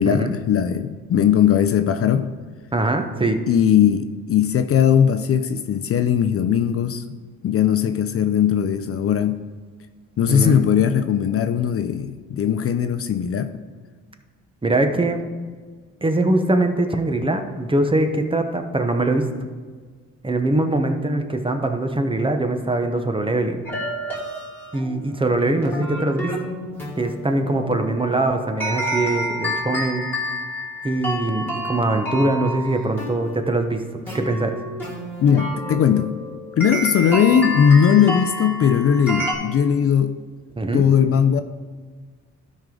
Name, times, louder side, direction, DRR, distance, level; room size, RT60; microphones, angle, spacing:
voice 1, 0.0-2.3 3.5-7.0 7.4-9.4 10.2-13.6 35.2-36.1 36.6-40.2 40.7-41.4, left 8 dB, 50° left, 10 dB, 0.5 m, -19 dB
voice 2, 2.7-3.4 10.3-10.6 14.6-15.2 16.0-19.3 20.2-23.6 24.7-26.3 27.0-30.1 30.8-33.8 34.1-34.5 40.6-40.8, right 2 dB, 15° right, 6 dB, 0.9 m, -22 dB
sound 1, 23.6-39.3, equal, 5° left, 2.6 m, -30 dB
12.5 x 5.2 x 3.8 m, 1.5 s
cardioid pair, 90°, 30 cm